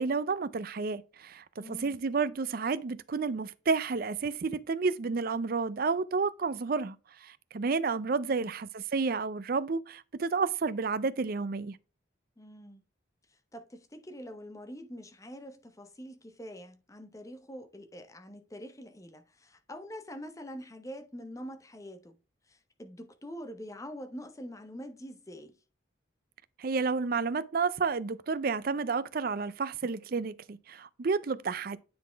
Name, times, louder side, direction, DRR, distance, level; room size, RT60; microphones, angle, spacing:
voice 1, 0.0-7.0 7.2-11.8 26.6-31.8, right 4 dB, 50° right, 0.5 m, -31 dB
voice 2, 1.6-2.0 8.2-8.5 12.4-12.8 13.3-22.2 22.5-25.5, equal, 15° left, 0.7 m, -45 dB
9.5 x 4.1 x 3.4 m
head